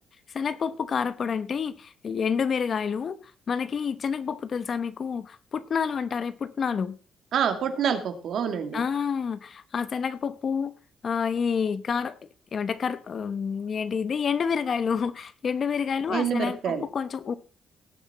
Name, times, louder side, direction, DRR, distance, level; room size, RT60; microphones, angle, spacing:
voice 1, 0.3-3.2 3.5-7.0 8.7-10.7 11.0-12.1 12.5-17.3, left 6 dB, 50° left, 14 dB, 1.0 m, -28 dB
voice 2, 7.3-8.8 16.1-16.8, right 7 dB, 70° right, 7 dB, 2.2 m, -27 dB
17.5 x 7.4 x 4.2 m, 0.37 s
cardioid pair, 90°, 0 cm